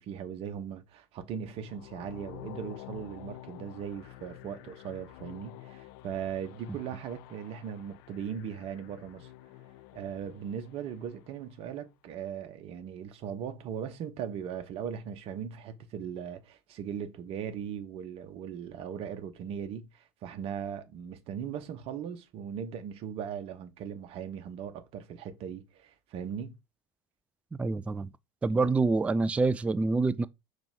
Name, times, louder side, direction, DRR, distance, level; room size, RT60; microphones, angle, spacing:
voice 1, 0.0-9.3 9.9-26.6 28.5-28.6, right 8 dB, 45° right, 1.1 m, -39 dB
sound 1, 1.4-11.6, left 14 dB, 55° left, 0.5 m, -49 dB
voice 2, 27.5-28.1 28.4-30.3, right 3 dB, 10° right, 0.3 m, -26 dB
5.2 x 4.2 x 5.0 m
figure-of-eight pair, 70°, 14 cm